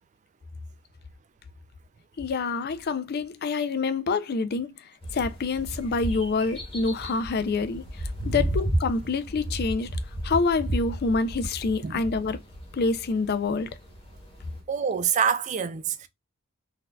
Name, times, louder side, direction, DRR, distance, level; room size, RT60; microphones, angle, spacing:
voice 1, 2.2-4.8 5.1-7.8 8.3-9.9 10.2-12.4 12.7-13.7, left 4 dB, 45° left, 0.4 m, -26 dB
sound 1, 5.0-14.6, right 1 dB, 25° left, 1.2 m, -33 dB
voice 2, 14.7-16.1, right 7 dB, 35° right, 0.3 m, -26 dB
4.0 x 2.6 x 2.2 m
head